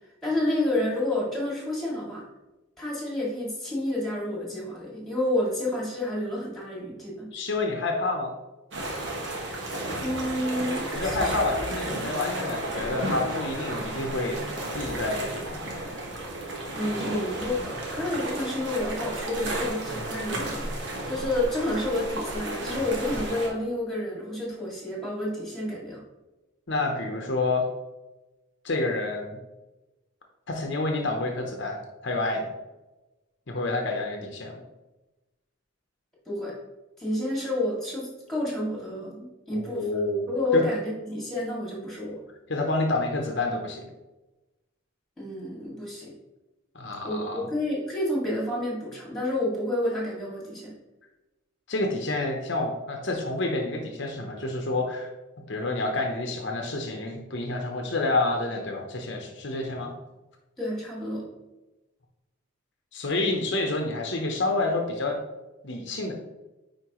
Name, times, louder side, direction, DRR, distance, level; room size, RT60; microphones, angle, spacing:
voice 1, 0.2-2.2 2.8-7.3 10.0-11.3 16.7-20.7 21.1-26.0 36.3-36.5 37.0-39.9 40.3-42.2 45.2-46.1 47.0-50.7 60.6-61.3, left 1 dB, ahead, -4 dB, 2.2 m, -29 dB
voice 2, 7.3-8.3 10.9-14.4 14.7-15.6 26.7-27.7 28.6-29.4 30.5-32.5 33.5-34.6 39.5-40.3 40.5-40.6 42.5-43.9 46.7-47.5 51.7-55.1 55.5-59.9 62.9-65.2 65.6-66.1, left 2 dB, 55° left, 2 dB, 0.8 m, -28 dB
sound 1, 8.7-23.5, right 1 dB, 60° right, 1.4 m, -33 dB
9.5 x 4.5 x 3.0 m, 1.1 s
head